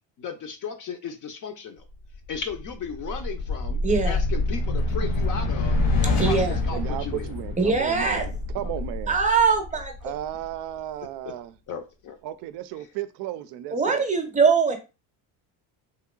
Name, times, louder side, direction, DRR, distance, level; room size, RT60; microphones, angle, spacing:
voice 1, 0.2-1.9 2.3-7.3 8.6-8.7 11.7-12.2 12.8-12.9, left 6 dB, 40° left, 0.6 m, -35 dB
sound 1, 2.1-10.5, left 2 dB, 70° left, 1.2 m, -27 dB
voice 2, 3.8-4.3 6.2-6.6 7.6-8.3 9.1-9.9 13.7-14.8, right 5 dB, 15° right, 0.7 m, -22 dB
voice 3, 6.7-9.2 10.0-11.5 12.2-14.1, right 12 dB, 60° right, 0.5 m, -34 dB
3.1 x 2.8 x 2.3 m
supercardioid pair, 85°, 46 cm